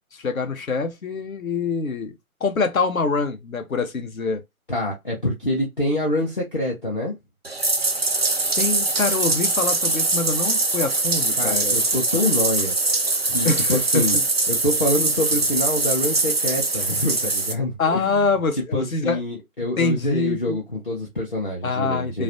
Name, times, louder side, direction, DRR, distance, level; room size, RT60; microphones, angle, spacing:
voice 1, 0.1-2.2 2.4-4.4 8.6-11.8 13.4-14.2 17.8-19.2 19.8-20.6 21.6-22.2, left 4 dB, 70° left, 0.8 m, -25 dB
voice 2, 4.7-7.1 11.4-12.8 13.3-14.2 14.5-18.3 18.7-22.2, left 1 dB, 40° left, 0.6 m, -26 dB
Bathtub (filling or washing), 7.4-17.5, right 2 dB, 45° right, 0.4 m, -22 dB
2.4 x 2.1 x 2.5 m
figure-of-eight pair, 155°, 43 cm